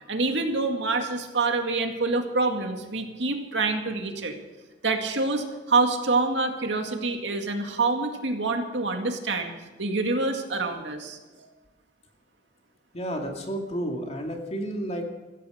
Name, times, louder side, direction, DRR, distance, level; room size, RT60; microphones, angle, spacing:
voice 1, 0.1-4.3 4.8-9.5 9.8-11.5, right 3 dB, 80° right, 4 dB, 2.1 m, -26 dB
voice 2, 12.9-15.1, equal, 35° left, 2 dB, 2.4 m, -31 dB
15.5 x 14.5 x 5.1 m, 1.3 s
head